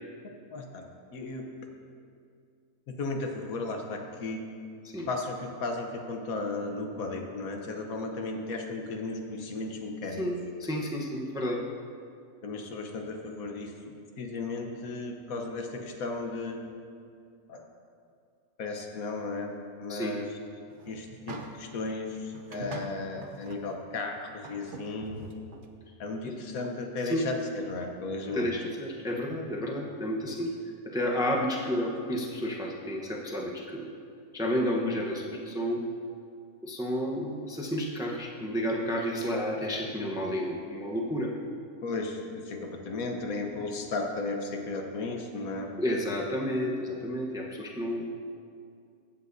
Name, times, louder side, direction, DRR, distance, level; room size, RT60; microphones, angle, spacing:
voice 1, 0.5-1.5 2.9-4.5 5.1-10.3 12.4-16.6 17.5-17.6 18.6-19.5 19.8-20.3 20.8-25.2 26.0-28.5 41.8-45.7, left 3 dB, 80° left, 3 dB, 1.4 m, -35 dB
voice 2, 10.2-11.6 19.9-20.2 26.2-26.3 27.0-27.3 28.3-30.5 30.8-33.9 34.3-35.8 36.6-41.3 45.8-48.0, equal, 5° right, -1 dB, 0.6 m, -31 dB
sound 1, 20.7-21.8 22.3-23.6 24.0-24.1 24.4-25.7, right 4 dB, 45° right, 0.7 m, -43 dB
15.0 x 8.7 x 2.7 m, 2.3 s
omnidirectional pair, 1.5 m